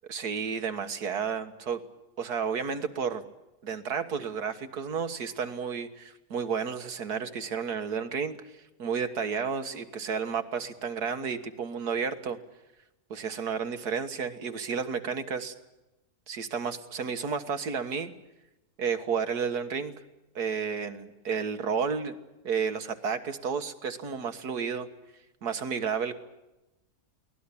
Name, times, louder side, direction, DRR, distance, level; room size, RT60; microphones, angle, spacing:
voice 1, 0.1-1.8 2.2-3.2 3.6-8.4 8.8-12.4 13.1-15.5 16.3-18.1 18.8-19.9 20.4-22.1 22.4-24.9 25.4-26.1, right 6 dB, 80° right, 9 dB, 2.0 m, -31 dB
23.0 x 18.5 x 8.5 m, 0.99 s
omnidirectional pair, 1.7 m